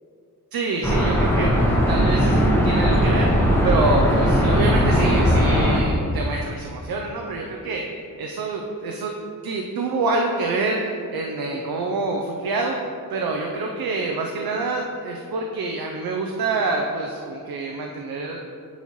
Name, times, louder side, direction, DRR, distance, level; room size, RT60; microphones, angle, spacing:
voice 1, 0.5-1.6 1.9-7.9 8.2-9.1 9.4-12.8 13.1-18.4, right 3 dB, 90° right, 1 dB, 0.6 m, -26 dB
sound 1, 0.8-5.8, equal, 5° left, 0.8 m, -18 dB
9.4 x 4.2 x 3.1 m, 2.4 s
wide cardioid pair, 150°, 35 cm